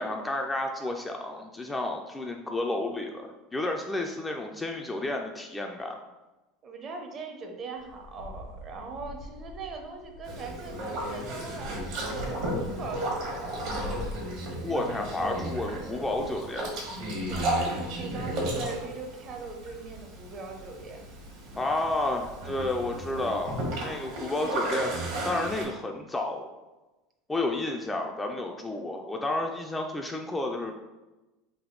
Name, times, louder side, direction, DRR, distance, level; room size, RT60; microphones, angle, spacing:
voice 1, 0.0-6.0 14.6-16.7 21.5-25.0 25.2-26.5 27.3-30.7, left 2 dB, 10° left, 2 dB, 0.3 m, -31 dB
voice 2, 6.6-13.6 15.1-15.3 17.3-21.1, right 4 dB, 35° right, 3 dB, 0.6 m, -41 dB
sound 1, 7.7-18.8, left 1 dB, 80° left, 0.6 m, -45 dB
Boat Water vehicle, 10.3-25.6, right 1 dB, 65° right, 1.3 m, -34 dB
3.4 x 2.6 x 3.8 m, 1.1 s
supercardioid pair, 130°, 0 cm